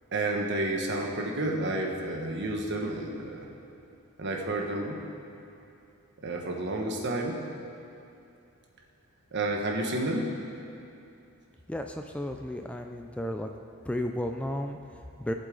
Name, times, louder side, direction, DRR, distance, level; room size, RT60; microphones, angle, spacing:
voice 1, 0.1-3.5 4.2-5.0 6.2-7.4 9.3-10.4, right 2 dB, 55° right, 0 dB, 1.3 m, -30 dB
voice 2, 11.7-13.5 13.8-15.3, left 1 dB, 5° left, 4 dB, 0.3 m, -33 dB
18.0 x 8.1 x 3.9 m, 2.7 s
head